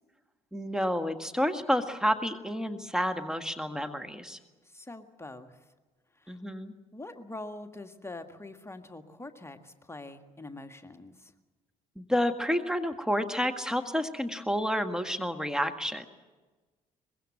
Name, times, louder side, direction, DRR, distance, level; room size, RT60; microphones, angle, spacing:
voice 1, 0.5-4.4 6.3-6.7 12.0-16.1, equal, 5° right, 6 dB, 1.8 m, -30 dB
voice 2, 4.7-5.6 6.2-6.4 6.9-11.3, left 2 dB, 15° left, 7 dB, 1.8 m, -44 dB
23.5 x 22.0 x 7.7 m, 1.3 s
figure-of-eight pair, 50°, 19 cm